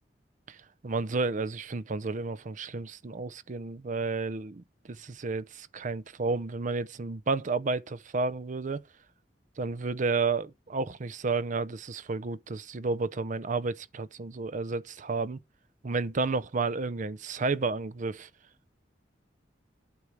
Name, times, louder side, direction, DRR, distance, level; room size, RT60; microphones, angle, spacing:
voice 1, 0.5-8.8 9.6-15.4 15.8-18.3, right 3 dB, 45° right, 0.6 m, -31 dB
8.5 x 4.7 x 7.0 m
head